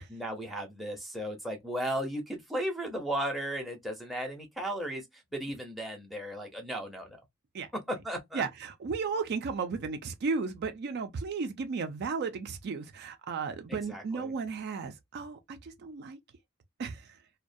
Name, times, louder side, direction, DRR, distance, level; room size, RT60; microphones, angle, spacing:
voice 1, 0.0-7.2 7.9-8.4 13.7-14.3, right 1 dB, ahead, 0.6 m, -35 dB
voice 2, 8.3-16.2 16.8-17.2, right 4 dB, 50° right, 0.4 m, -34 dB
2.3 x 2.1 x 2.5 m
head